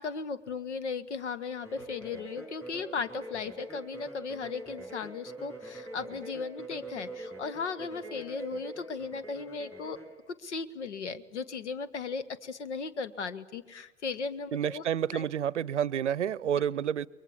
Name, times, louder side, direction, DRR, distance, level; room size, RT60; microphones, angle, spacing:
voice 1, 0.0-10.0 10.4-14.8 15.1-15.3 16.5-16.6, left 4 dB, 70° left, 13 dB, 1.4 m, -36 dB
sound 1, 1.6-10.1, right 1 dB, 5° left, 6.5 m, -44 dB
voice 2, 14.5-17.1, right 9 dB, 70° right, 24 dB, 0.7 m, -29 dB
29.0 x 22.0 x 7.3 m, 1.2 s
figure-of-eight pair, 100°, 36 cm